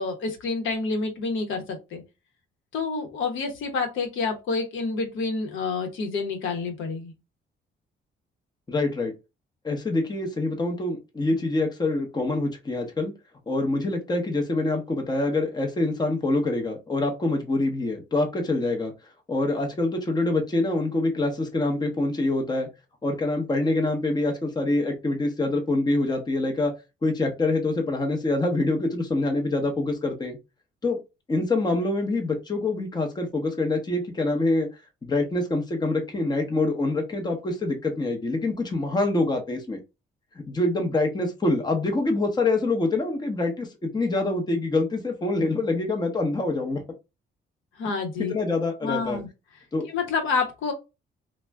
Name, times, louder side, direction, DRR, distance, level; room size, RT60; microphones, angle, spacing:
voice 1, 0.0-2.0 2.7-7.1 47.8-48.3 48.8-49.3 49.9-50.7, left 4 dB, 80° left, 4 dB, 0.9 m, -28 dB
voice 2, 8.7-9.1 9.6-13.1 13.5-18.9 19.3-22.7 23.0-26.7 27.0-30.4 30.8-31.0 31.3-34.7 35.0-39.8 40.5-46.8 48.2-49.2 49.7-49.9, left 2 dB, 20° left, 3 dB, 0.7 m, -25 dB
2.4 x 2.1 x 3.3 m, 0.26 s
cardioid pair, 90°, 20 cm